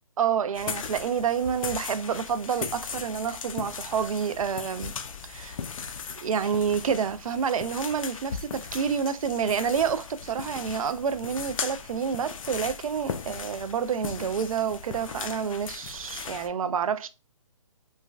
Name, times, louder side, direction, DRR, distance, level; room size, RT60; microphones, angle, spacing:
voice 1, 0.2-4.9 5.2-5.6 6.2-17.1, right 7 dB, 75° right, 0.4 m, -28 dB
sound 1, 0.5-16.5, left 6 dB, 70° left, 0.4 m, -38 dB
3.2 x 2.2 x 2.3 m
hypercardioid pair, 160°, 18 cm